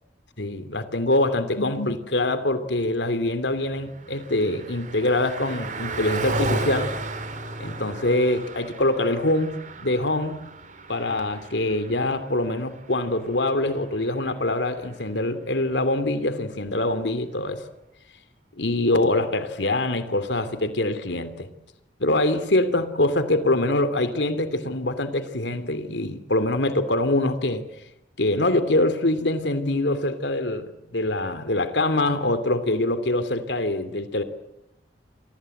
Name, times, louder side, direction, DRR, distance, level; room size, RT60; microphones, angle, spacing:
voice 1, 0.4-6.9 7.6-10.4 10.9-17.6 18.6-21.5 22.0-27.6 28.2-34.2, left 2 dB, 85° left, 12 dB, 2.8 m, -24 dB
Car passing by, 3.3-15.1, right 2 dB, 45° right, 4.1 m, -35 dB
29.5 x 24.0 x 7.9 m, 0.85 s
head